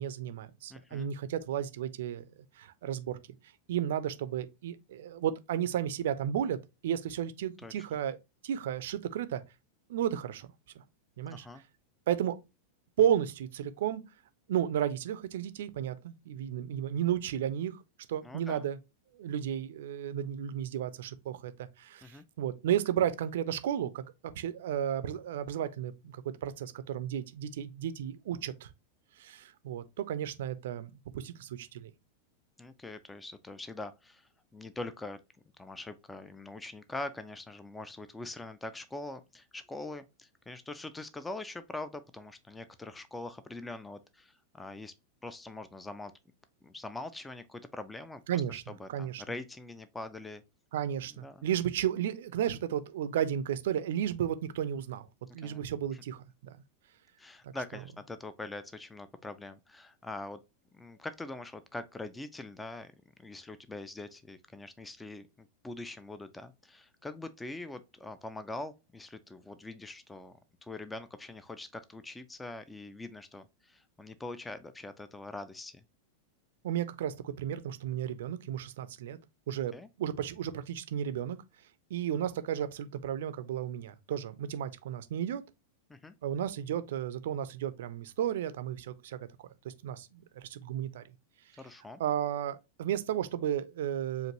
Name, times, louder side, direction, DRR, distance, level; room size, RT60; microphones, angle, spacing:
voice 1, 0.0-2.2 2.6-3.2 3.7-6.6 6.8-8.2 8.4-9.4 9.9-10.5 10.8-10.9 11.2-11.5 12.1-12.4 13.0-14.0 14.5-17.8 18.1-18.8 19.2-24.0 24.4-28.7 29.2-31.9 48.3-48.6 48.9-49.2 50.7-55.1 55.3-56.2 57.4-57.5 76.6-79.2 79.5-81.4 81.9-85.4 86.2-89.2 89.6-91.0 92.0-94.3, right 10 dB, 55° right, 0.4 m, -33 dB
voice 2, 0.7-1.1 7.6-7.9 11.3-11.6 18.2-18.6 22.0-22.2 32.6-35.2 35.6-44.9 45.2-46.1 46.6-50.4 51.1-51.5 55.3-55.6 55.9-56.0 57.2-60.4 60.7-62.9 63.2-75.8 79.7-79.9 85.9-86.1 91.6-92.0, left 2 dB, 10° left, 0.4 m, -43 dB
5.1 x 2.5 x 2.8 m
figure-of-eight pair, 90°, 0 cm